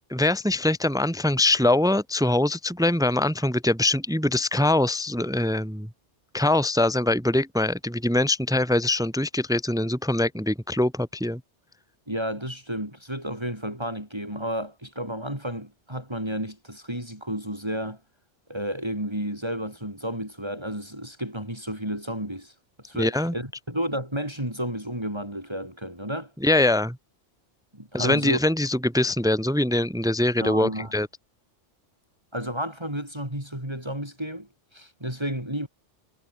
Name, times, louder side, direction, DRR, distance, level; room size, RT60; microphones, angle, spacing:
voice 1, 0.0-5.9 6.3-11.4 23.0-23.3 26.4-27.0 27.9-31.1, left 1 dB, 5° right, 1.5 m, -23 dB
voice 2, 12.1-18.0 18.5-26.3 27.7-28.4 30.4-30.9 32.3-35.7, equal, 20° right, 6.2 m, -32 dB
omnidirectional pair, 1.2 m